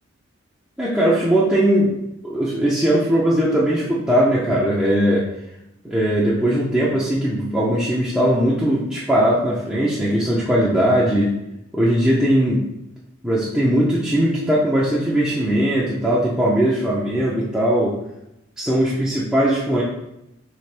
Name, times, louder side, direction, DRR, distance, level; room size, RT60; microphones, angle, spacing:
voice 1, 0.8-2.0 2.2-5.2 5.8-11.3 11.7-12.6 13.2-18.0 18.6-19.8, equal, 5° right, -8 dB, 0.5 m, -19 dB
3.3 x 3.2 x 4.4 m, 0.86 s
head